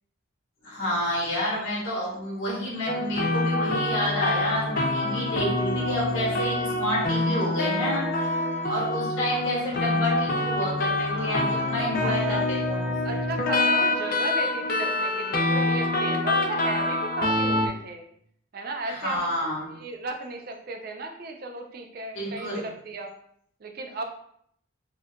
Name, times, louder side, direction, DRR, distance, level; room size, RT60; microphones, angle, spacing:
voice 1, 0.6-8.4 8.7-13.2 18.8-19.7 22.1-22.6, equal, 75° left, -5 dB, 1.4 m, -29 dB
sound 1, 2.9-17.7, left 2 dB, 45° left, 0.4 m, -26 dB
voice 2, 11.1-11.5 11.8-12.4 13.0-18.0 18.5-19.3 19.7-23.1 23.6-24.0, right 3 dB, 45° right, 4 dB, 0.4 m, -35 dB
4.3 x 2.4 x 2.3 m, 0.67 s
head